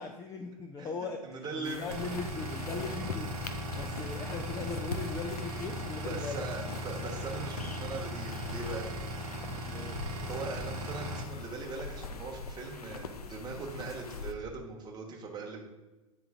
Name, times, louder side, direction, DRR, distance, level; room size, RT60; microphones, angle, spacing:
voice 1, 0.0-6.6 7.0-7.2 9.6-10.0, left 4 dB, 15° left, 4 dB, 0.4 m, -40 dB
voice 2, 0.8-2.0 6.0-8.9 10.3-15.6, right 3 dB, 20° right, -1 dB, 1.2 m, -40 dB
sound 1, 1.6-14.3, left 4 dB, 85° left, 0.5 m, -43 dB
sound 2, 1.9-11.2, equal, 65° right, 0.9 m, -38 dB
8.7 x 3.7 x 3.5 m, 1.1 s
figure-of-eight pair, 95°, 19 cm